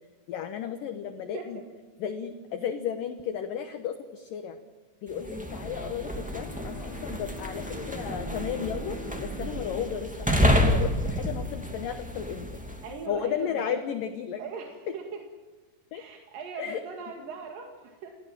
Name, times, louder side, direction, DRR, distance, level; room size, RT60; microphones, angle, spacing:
voice 1, 0.3-1.6 2.0-4.6 5.0-12.5 13.1-14.4 15.9-16.0 16.6-16.8, left 8 dB, 70° left, 8 dB, 2.3 m, -34 dB
sound 1, 5.1-12.9, equal, 5° right, 0.9 m, -29 dB
Bowed string instrument, 6.0-11.0, left 3 dB, 45° left, 6.0 m, -44 dB
voice 2, 12.8-13.8 14.4-15.2 15.9-18.2, right 5 dB, 60° right, 2 dB, 3.3 m, -40 dB
29.0 x 17.0 x 7.4 m, 1.3 s
omnidirectional pair, 5.1 m